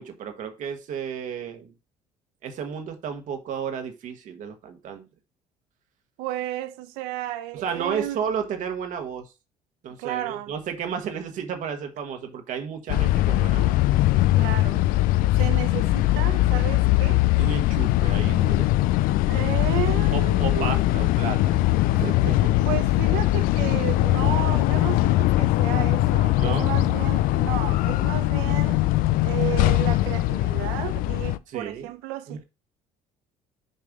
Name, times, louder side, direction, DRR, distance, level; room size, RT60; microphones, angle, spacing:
voice 1, 0.0-1.7 2.4-5.0 7.5-9.3 9.8-13.7 17.4-18.7 20.1-21.6 21.9-22.5 26.4-26.8 31.5-31.9 32.3-32.4, right 7 dB, 60° right, 1.4 m, -32 dB
voice 2, 6.2-8.2 10.0-10.5 14.4-14.8 15.4-17.3 19.3-20.8 22.6-28.9 29.2-32.4, right 14 dB, 85° right, 0.8 m, -33 dB
sound 1, 12.9-31.4, left 16 dB, 75° left, 0.4 m, -21 dB
6.5 x 3.3 x 5.2 m
supercardioid pair, 90°, 15 cm